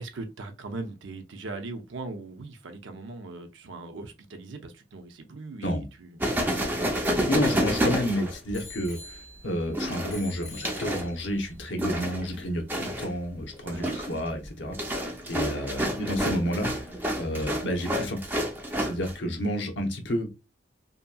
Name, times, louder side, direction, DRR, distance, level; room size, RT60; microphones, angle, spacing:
voice 1, 0.0-6.2 13.6-14.0, right 3 dB, 90° right, 0.6 m, -39 dB
sound 1, 6.2-8.8 9.7-11.1 11.8-12.3 12.7-13.1 13.5-19.1, equal, 10° right, 0.4 m, -29 dB
voice 2, 7.3-16.9 17.2-18.2 18.8-20.3, equal, 80° left, 0.8 m, -30 dB
Bicycle bell, 8.5-9.7 10.1-11.4 12.1-12.2, left 3 dB, 40° left, 0.6 m, -47 dB
2.8 x 2.7 x 2.2 m
head